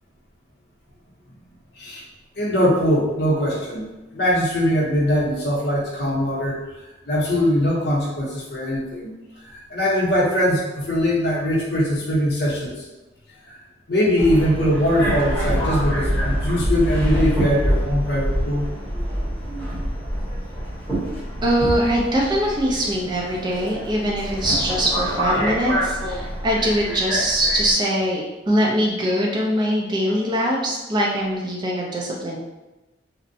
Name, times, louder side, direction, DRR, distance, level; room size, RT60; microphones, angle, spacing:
voice 1, 2.4-3.9 4.1-6.6 7.1-9.1 9.4-12.8 13.4-13.6 13.9-18.7, equal, 60° left, -4 dB, 0.7 m, -21 dB
Subway metro underground, 14.2-27.7, equal, 10° left, 0.9 m, -26 dB
voice 2, 21.4-32.4, equal, 25° right, -3 dB, 0.3 m, -22 dB
2.5 x 2.0 x 2.6 m, 1.1 s
head